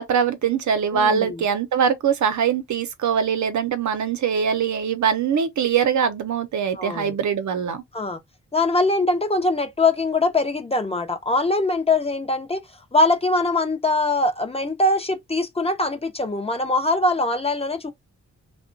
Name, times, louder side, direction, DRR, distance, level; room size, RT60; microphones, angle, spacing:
voice 1, 0.0-7.8, right 7 dB, 70° right, 0.7 m, -22 dB
voice 2, 0.9-1.4 6.7-7.1 7.9-8.2 8.5-12.6 12.9-17.9, left 2 dB, 20° left, 0.5 m, -22 dB
2.8 x 2.1 x 2.5 m
wide cardioid pair, 160°, 30 cm